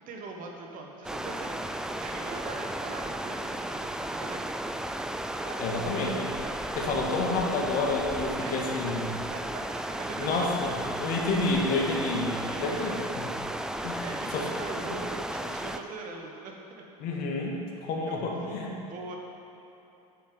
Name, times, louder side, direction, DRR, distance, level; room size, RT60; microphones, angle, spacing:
voice 1, 0.1-4.5 5.3-6.7 8.4-8.6 9.3-11.0 11.8-12.0 12.3-12.9 13.7-16.8 18.1-19.2, right 3 dB, 45° right, 1 dB, 1.5 m, -42 dB
sound 1, 1.0-15.8, right 1 dB, 5° right, 0.4 m, -34 dB
voice 2, 5.6-6.3 6.8-9.1 10.2-13.0 13.8-14.1 14.3-14.5 17.0-18.7, left 3 dB, 50° left, 0 dB, 1.7 m, -29 dB
8.5 x 7.5 x 5.4 m, 3.0 s
figure-of-eight pair, 75°, 20 cm